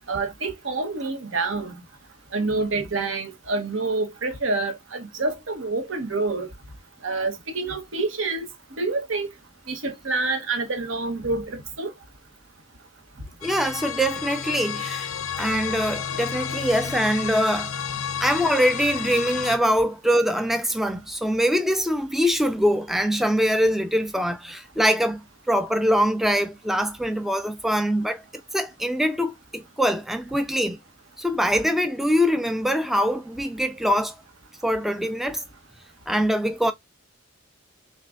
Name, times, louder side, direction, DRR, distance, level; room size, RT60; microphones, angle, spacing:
voice 1, 0.1-1.8 2.3-6.5 7.0-8.5 8.8-9.3 9.7-11.9, right 3 dB, 70° right, 1.1 m, -27 dB
sound 1, 13.4-19.6, left 8 dB, 90° left, 0.5 m, -31 dB
voice 2, 13.4-15.1 15.4-17.7 18.2-28.2 28.5-30.8 31.2-34.2 34.6-35.4 36.1-36.7, equal, ahead, 0.3 m, -23 dB
6.4 x 2.2 x 2.4 m
head